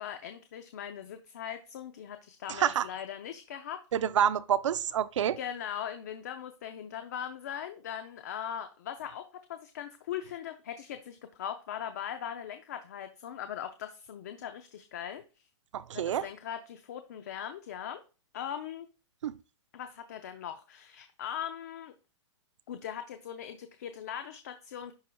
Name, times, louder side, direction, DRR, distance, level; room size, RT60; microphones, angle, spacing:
voice 1, 0.0-3.8 5.4-15.5 15.9-18.0 18.3-18.9 19.7-21.9 22.7-24.9, left 9 dB, 35° left, 0.4 m, -40 dB
voice 2, 3.9-5.4 15.7-16.2 19.2-19.3, right 9 dB, 70° right, 0.5 m, -27 dB
11.0 x 4.4 x 2.2 m
hypercardioid pair, 175°, 16 cm